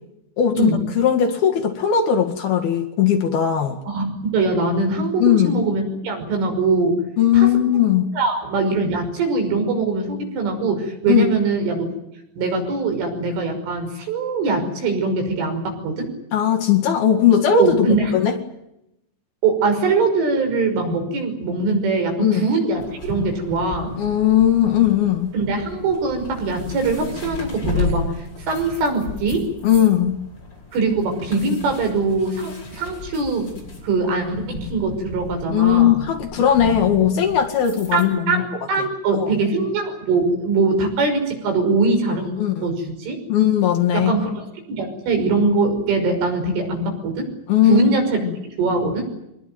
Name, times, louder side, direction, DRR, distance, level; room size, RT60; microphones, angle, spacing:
voice 1, 0.4-3.8 5.2-5.6 7.2-8.1 11.1-11.2 16.3-17.9 18.1-18.4 22.2-22.5 24.0-25.3 29.6-30.2 35.5-38.4 39.1-39.4 42.4-42.7 43.3-44.2 47.5-47.9 48.2-48.3, left 9 dB, 60° left, 5 dB, 3.5 m, -18 dB
voice 2, 3.9-7.0 7.3-7.5 8.1-11.9 12.4-16.1 17.6-18.1 19.4-23.9 25.3-28.1 28.5-29.5 30.7-36.0 37.9-43.2 43.9-47.3 47.6-49.0, right 3 dB, 80° right, 5 dB, 8.2 m, -22 dB
sound 1, 22.8-38.0, left 4 dB, 25° left, 8.1 m, -34 dB
24.5 x 20.5 x 9.3 m, 0.84 s
omnidirectional pair, 5.6 m